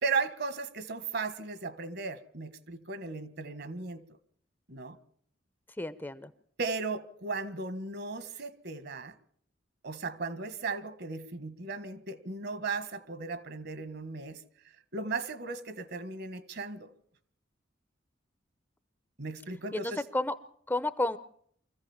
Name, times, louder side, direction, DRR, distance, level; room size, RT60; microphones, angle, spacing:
voice 1, 0.0-4.0 4.7-5.0 6.6-9.1 9.8-14.4 14.9-16.9 19.2-20.0, right 4 dB, 60° right, 1.7 m, -36 dB
voice 2, 5.8-6.3 19.7-20.3 20.7-21.2, left 2 dB, 10° left, 0.8 m, -31 dB
25.0 x 15.0 x 7.3 m
head